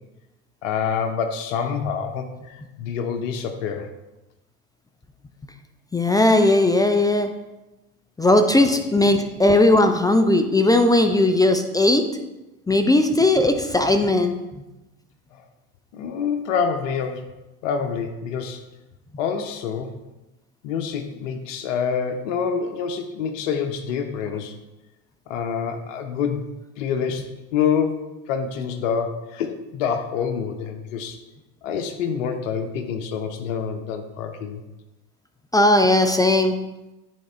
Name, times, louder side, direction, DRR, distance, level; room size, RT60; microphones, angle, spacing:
voice 1, 0.6-3.9 15.3-15.4 15.9-17.3 17.6-18.6 19.2-19.9 20.6-24.5 25.3-26.5 26.8-31.2 31.6-34.6, left 6 dB, 70° left, 6 dB, 0.9 m, -27 dB
voice 2, 5.9-7.3 8.2-12.0 12.7-14.3 35.5-36.5, left 2 dB, 10° left, 6 dB, 0.5 m, -17 dB
9.4 x 3.7 x 4.4 m, 1.0 s
hypercardioid pair, 85°, 39 cm